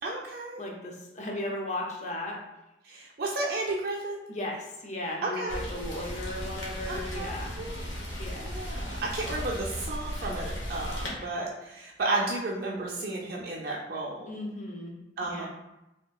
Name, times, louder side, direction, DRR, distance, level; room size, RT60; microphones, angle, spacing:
voice 1, 0.0-0.6 2.8-4.2 5.2-5.6 6.9-8.1 8.4-14.4 15.2-15.5, right 2 dB, 55° right, -3 dB, 0.4 m, -33 dB
voice 2, 0.6-2.4 4.3-7.5 8.2-8.5 14.3-14.9 15.2-15.5, left 1 dB, 40° left, -1 dB, 0.5 m, -36 dB
Rain, 5.5-11.1, equal, 85° left, 0.9 m, -36 dB
3.2 x 2.8 x 2.3 m, 0.92 s
head